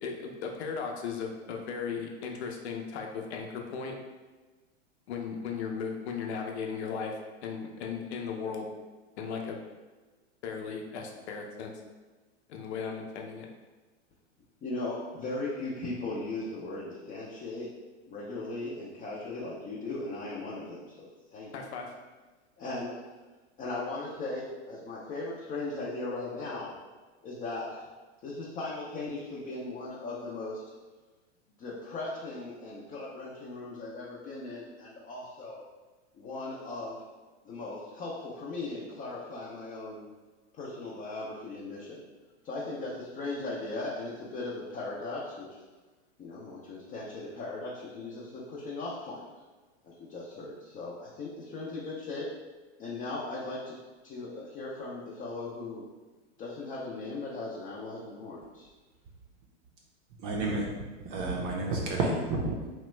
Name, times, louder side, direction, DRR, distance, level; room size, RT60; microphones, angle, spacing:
voice 1, 0.0-3.9 5.1-8.7 9.2-9.6 10.4-11.8 12.5-13.5 21.5-21.9, left 5 dB, 70° left, 2 dB, 0.6 m, -36 dB
voice 2, 14.6-17.7 18.1-20.8 21.3-21.5 22.6-23.0 23.6-26.7 27.2-27.8 28.2-30.6 31.6-35.6 36.2-37.0 37.5-40.0 40.6-42.0 42.4-45.5 46.2-49.2 49.8-52.2 52.8-53.7 54.0-55.8 56.4-58.7, left 2 dB, 25° left, -6 dB, 0.4 m, -38 dB
voice 3, 60.2-60.7 61.0-62.7, right 2 dB, 45° right, -1 dB, 0.5 m, -30 dB
2.9 x 2.1 x 3.1 m, 1.3 s
hypercardioid pair, 110°, 35 cm